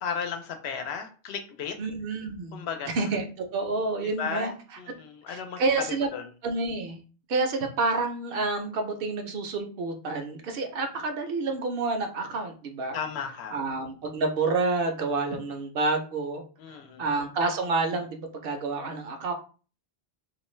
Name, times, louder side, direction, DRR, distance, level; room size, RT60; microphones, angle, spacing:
voice 1, 0.0-1.8 2.5-2.9 4.0-5.6 6.1-6.3 12.9-13.6 16.6-17.1, left 6 dB, 85° left, 6 dB, 0.8 m, -34 dB
voice 2, 1.8-4.5 5.3-6.1 6.4-7.0 7.3-13.0 13.5-19.3, right 3 dB, 65° right, 5 dB, 0.8 m, -29 dB
2.4 x 2.2 x 3.1 m, 0.36 s
omnidirectional pair, 1.0 m